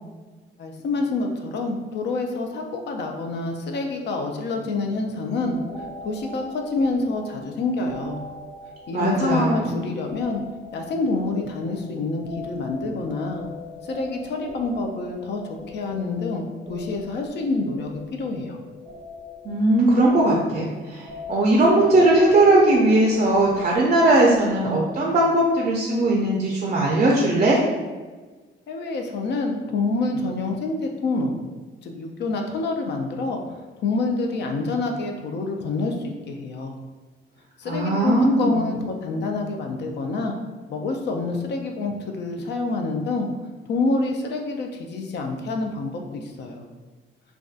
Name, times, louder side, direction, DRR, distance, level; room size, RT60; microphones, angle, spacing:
voice 1, 0.6-5.6 6.0-8.2 8.9-10.4 10.7-13.4 13.8-18.6 28.7-31.4 31.8-33.4 33.8-36.8 37.6-40.3 40.7-43.3 43.7-46.6, left 3 dB, 60° left, 3 dB, 0.4 m, -27 dB
sound 1, 5.4-25.2, left 3 dB, 15° left, 1.0 m, -41 dB
voice 2, 8.9-9.8 19.4-27.6 37.7-38.8, right 1 dB, 35° right, -3 dB, 0.4 m, -19 dB
2.5 x 2.2 x 2.4 m, 1.3 s
cardioid pair, 90°, 20 cm